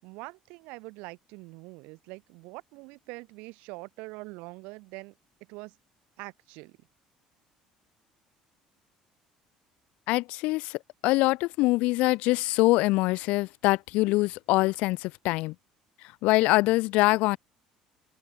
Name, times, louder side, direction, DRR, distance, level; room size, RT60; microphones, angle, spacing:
voice 1, 0.0-5.1 5.5-5.8 6.2-6.8, right 26 dB, 85° right, 5.7 m, -44 dB
voice 2, 10.1-15.5 16.2-17.4, left 21 dB, 80° left, 1.5 m, -24 dB
cardioid pair, 125°, 2 cm